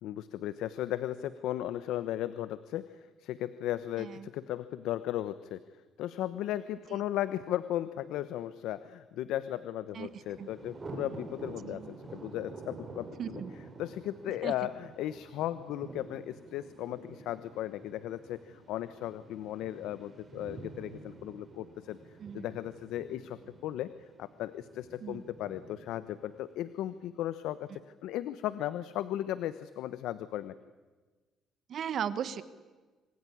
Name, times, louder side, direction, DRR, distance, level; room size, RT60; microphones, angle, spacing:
voice 1, 0.0-5.6 6.0-13.4 13.8-22.0 22.3-23.9 24.2-30.5, left 12 dB, 85° left, 14 dB, 1.0 m, -36 dB
voice 2, 4.0-4.3 6.9-7.0 9.9-10.1 10.4-10.5 11.6-11.9 13.2-13.5 14.4-14.5 22.2-22.4 25.0-25.2 31.7-32.4, right 8 dB, 50° right, 14 dB, 1.4 m, -37 dB
Thunder, 9.9-26.9, right 3 dB, 25° right, 4.5 m, -49 dB
27.0 x 20.5 x 10.0 m, 1.3 s
cardioid pair, 130°, 0 cm